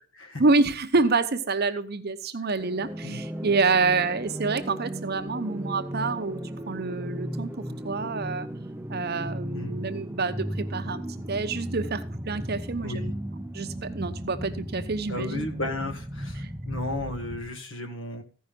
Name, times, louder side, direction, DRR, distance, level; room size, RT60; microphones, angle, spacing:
voice 1, 0.4-6.4 6.7-8.5 8.9-13.1 13.5-15.4 16.4-16.5, right 3 dB, 50° right, 0.8 m, -27 dB
sound 1, 2.6-17.6, right 1 dB, 10° right, 0.6 m, -35 dB
voice 2, 15.1-18.2, left 2 dB, 60° left, 2.0 m, -34 dB
15.0 x 5.6 x 5.1 m
head